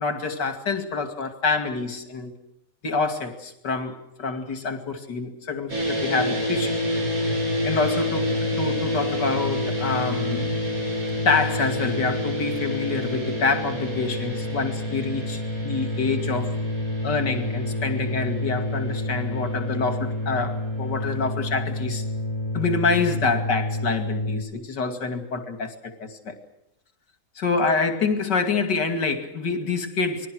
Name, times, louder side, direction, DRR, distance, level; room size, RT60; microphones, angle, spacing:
voice 1, 0.0-2.3 2.8-6.8 7.6-10.5 11.2-16.5 17.0-22.0 22.5-26.4 27.4-30.3, left 4 dB, 85° left, 7 dB, 3.1 m, -26 dB
sound 1, 5.7-24.4, left 1 dB, 55° right, 6.0 m, -27 dB
29.0 x 21.0 x 6.3 m, 0.80 s
omnidirectional pair, 1.8 m